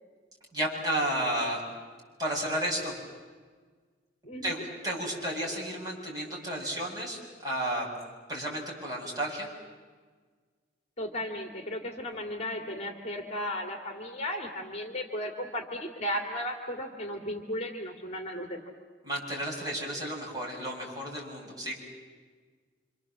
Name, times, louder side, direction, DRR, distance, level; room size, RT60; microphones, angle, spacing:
voice 1, 0.5-1.6 2.2-2.9 4.4-4.6 4.8-7.9 8.3-9.5 19.0-21.7, right 1 dB, 20° right, -3 dB, 7.5 m, -32 dB
voice 2, 4.2-4.6 11.0-18.6, left 1 dB, 35° left, 4 dB, 2.5 m, -35 dB
28.5 x 26.5 x 7.6 m, 1.5 s
head